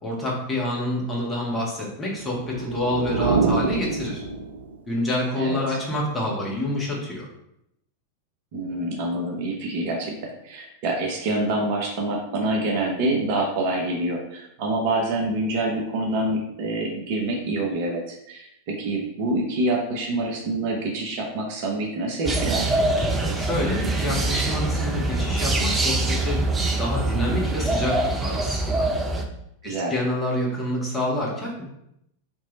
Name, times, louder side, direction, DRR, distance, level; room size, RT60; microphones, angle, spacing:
voice 1, 0.0-4.2 4.9-7.3 23.2-26.4 26.8-28.9 29.6-31.7, left 1 dB, 15° left, -4 dB, 1.5 m, -27 dB
sound 1, 2.2-4.9, right 4 dB, 65° right, 0.4 m, -26 dB
voice 2, 5.4-5.8 8.5-22.7 29.6-29.9, right 2 dB, 45° right, 0 dB, 0.8 m, -26 dB
sound 2, 22.2-29.2, right 2 dB, 15° right, 0.6 m, -24 dB
3.6 x 3.1 x 4.0 m, 0.79 s
figure-of-eight pair, 90°, 0 cm